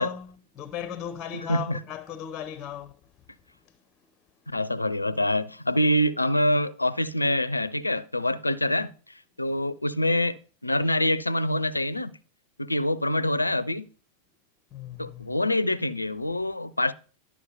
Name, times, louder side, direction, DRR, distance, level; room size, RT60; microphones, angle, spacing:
voice 1, 0.0-3.0 3.7-3.8 9.5-9.6 14.7-15.4, left 9 dB, 30° left, 0.6 m, -37 dB
voice 2, 1.5-1.8 4.5-8.9 9.4-12.2 12.6-13.9 15.0-16.9, left 1 dB, 85° left, 0.5 m, -25 dB
11.5 x 4.9 x 6.8 m
figure-of-eight pair, 90°, 0 cm